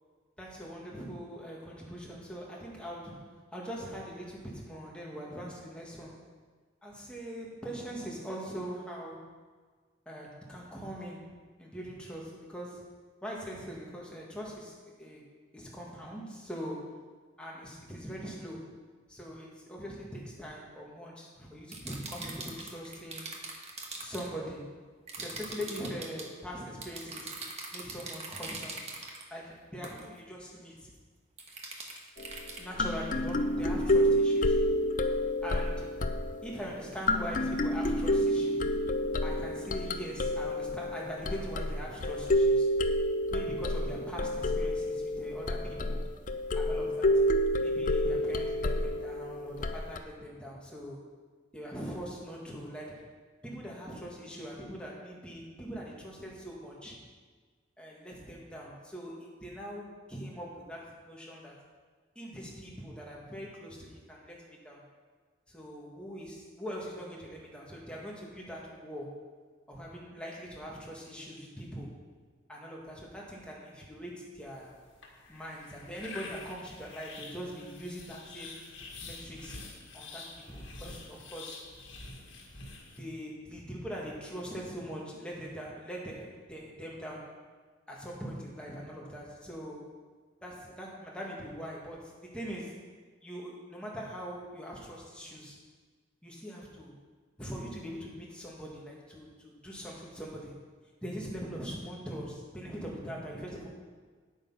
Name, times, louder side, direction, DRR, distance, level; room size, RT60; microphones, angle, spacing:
voice 1, 0.4-6.3 6.8-9.3 10.1-12.9 13.2-15.2 15.5-17.0 17.4-18.8 19.1-23.3 23.9-24.8 25.2-27.4 27.7-28.9 29.3-30.9 32.6-34.6 35.4-36.0 36.4-38.7 39.2-42.7 43.3-46.0 46.5-47.3 47.6-51.0 51.5-53.1 53.4-57.0 57.8-61.6 62.2-64.8 65.5-69.2 69.7-71.9 72.5-74.7 75.3-78.6 79.0-79.6 79.9-81.6 82.9-87.4 87.9-89.9 90.4-92.8 93.2-95.6 96.2-97.0 97.4-100.6 101.0-103.7, equal, 5° left, -4 dB, 1.8 m, -42 dB
sound 1, 21.7-24.3 25.1-26.3 26.8-29.2 29.8-30.1 31.4-32.6, right 3 dB, 35° right, 1.2 m, -42 dB
sound 2, 32.2-32.4 32.8-36.8 37.1-50.0, left 1 dB, 45° left, 0.5 m, -29 dB
sound 3, 74.5-83.0, left 3 dB, 80° left, 1.7 m, -47 dB
8.8 x 8.3 x 5.6 m, 1.5 s
head